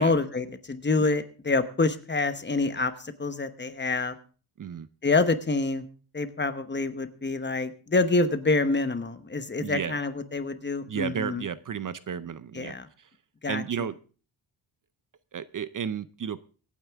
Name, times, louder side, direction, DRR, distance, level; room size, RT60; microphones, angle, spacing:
voice 1, 0.0-4.2 5.0-5.8 6.1-11.4 12.5-12.9 13.4-13.9, left 3 dB, 25° left, 10 dB, 1.0 m, -27 dB
voice 2, 4.6-4.9 9.6-10.0 10.9-13.1 13.4-13.9 15.3-16.4, right 8 dB, 45° right, 15 dB, 0.6 m, -33 dB
24.5 x 9.2 x 3.5 m, 0.38 s
wide cardioid pair, 160°, 44 cm